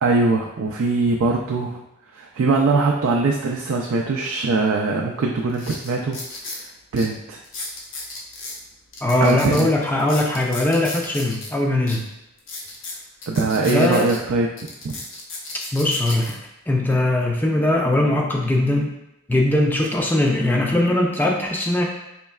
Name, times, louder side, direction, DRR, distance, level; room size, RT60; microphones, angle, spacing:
voice 1, 0.0-1.8 2.1-6.2 6.4-7.4 9.2-9.7 13.3-14.5 14.8-14.9, right 3 dB, 90° right, 0 dB, 0.4 m, -22 dB
sound 1, 4.9-5.0 5.5-6.6 7.0-7.1 7.4-8.6 8.9-11.5 11.9-12.0 12.4-14.2 14.6-16.3 17.0-17.2, left 2 dB, 80° left, 0.7 m, -34 dB
voice 2, 9.0-12.1 13.7-14.1 15.7-16.4 16.7-18.9 19.3-21.8, left 1 dB, 10° left, 0 dB, 0.4 m, -20 dB
4.4 x 3.1 x 2.3 m, 0.87 s
head